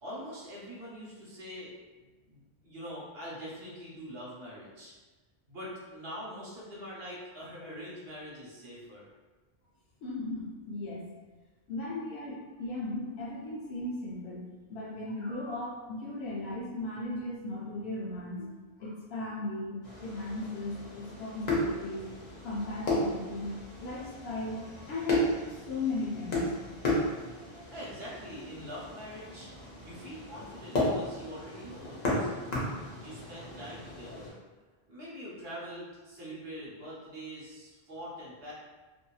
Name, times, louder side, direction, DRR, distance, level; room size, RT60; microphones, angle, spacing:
voice 1, 0.0-4.9 5.5-9.1 27.7-29.5 29.8-32.5 32.8-34.4 34.9-38.5, equal, 70° right, -6 dB, 1.1 m, -44 dB
voice 2, 10.0-11.1 11.7-14.4 14.7-18.5 18.8-23.5 23.8-24.6 24.9-26.5, left 2 dB, 75° left, -6 dB, 0.9 m, -37 dB
sound 1, 19.8-34.3, left 1 dB, 45° left, 0.7 m, -34 dB
2.7 x 2.6 x 2.3 m, 1.3 s
omnidirectional pair, 1.1 m